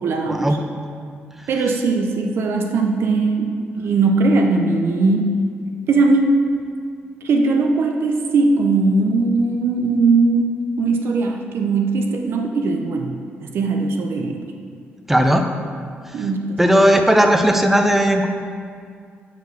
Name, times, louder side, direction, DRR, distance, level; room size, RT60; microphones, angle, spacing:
voice 1, 0.0-0.6 1.5-5.4 5.9-6.6 7.2-14.5 16.1-17.0, right 3 dB, 70° right, 3 dB, 0.5 m, -19 dB
voice 2, 15.1-15.4 16.2-16.3 16.6-18.3, equal, 5° right, 5 dB, 0.5 m, -16 dB
5.2 x 4.5 x 6.2 m, 2.1 s
cardioid pair, 100°, 4 cm